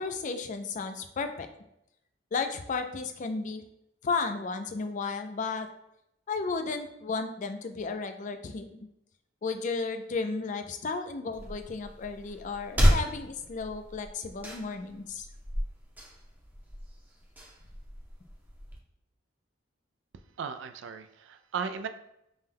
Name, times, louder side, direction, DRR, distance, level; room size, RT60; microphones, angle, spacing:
voice 1, 0.0-1.5 2.3-3.6 4.0-5.7 6.3-8.7 9.4-15.3, left 4 dB, 40° left, 7 dB, 0.4 m, -33 dB
sound 1, 11.3-18.8, equal, 10° right, 0.6 m, -32 dB
voice 2, 20.4-21.9, right 6 dB, 75° right, 9 dB, 0.4 m, -36 dB
5.4 x 2.2 x 3.4 m, 0.81 s
head